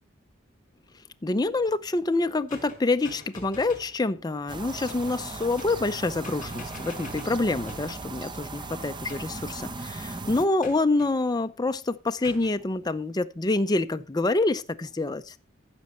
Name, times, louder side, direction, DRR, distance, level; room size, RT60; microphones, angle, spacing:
voice 1, 1.2-15.4, left 2 dB, 20° left, 0.5 m, -27 dB
sound 1, 2.5-4.0 4.9-5.2 5.6-6.0 6.2-8.0 9.1-9.6 10.6-11.1 12.2-12.6, left 2 dB, 40° left, 4.7 m, -45 dB
sound 2, 4.5-10.5, right 3 dB, 25° right, 0.7 m, -38 dB
15.0 x 6.3 x 4.3 m
head